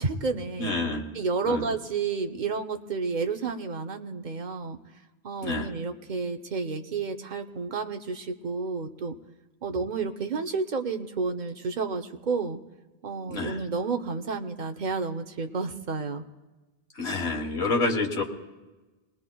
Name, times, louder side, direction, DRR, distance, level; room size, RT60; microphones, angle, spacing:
voice 1, 0.0-0.7 1.1-4.8 5.2-9.1 9.6-12.6 13.0-16.2, right 4 dB, 50° right, 6 dB, 0.9 m, -31 dB
voice 2, 0.6-1.0 1.5-1.7 5.4-5.7 13.3-13.6 16.9-18.2, left 3 dB, 85° left, 0 dB, 1.7 m, -28 dB
28.0 x 20.0 x 2.3 m, 1.2 s
omnidirectional pair, 1.1 m